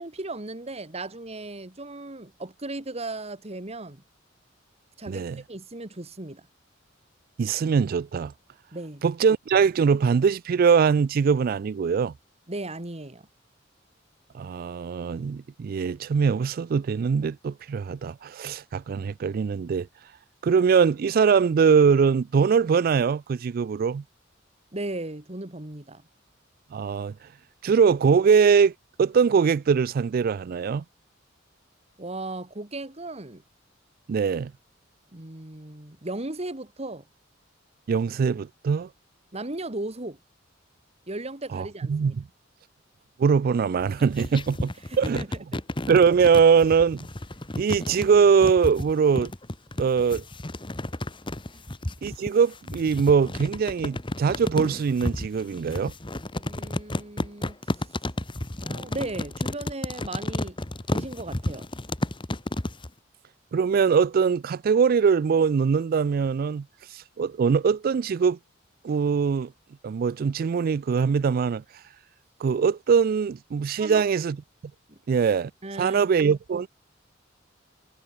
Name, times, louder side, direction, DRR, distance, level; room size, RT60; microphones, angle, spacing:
voice 1, 0.0-4.0 5.0-6.4 8.7-9.1 12.5-13.2 24.7-26.0 32.0-33.4 35.1-37.0 39.3-40.2 41.1-42.1 44.9-45.3 51.5-51.6 56.4-57.6 58.6-60.6 60.9-61.7 73.7-74.0 74.9-75.0 75.6-76.1, right 2 dB, 35° right, 1.9 m, -36 dB
voice 2, 5.1-5.4 7.4-8.3 9.0-12.1 14.3-19.9 20.4-24.0 26.7-27.1 27.6-28.7 29.0-30.8 34.1-34.5 37.9-38.9 41.5-42.2 43.2-45.2 45.9-47.1 47.5-49.3 49.8-50.2 52.0-55.9 63.5-66.7 66.9-68.4 68.8-69.5 69.8-71.6 72.4-74.4 75.1-75.5 75.8-76.7, right 6 dB, 50° right, 0.3 m, -22 dB
sound 1, 43.8-62.9, left 1 dB, 25° left, 1.5 m, -32 dB
head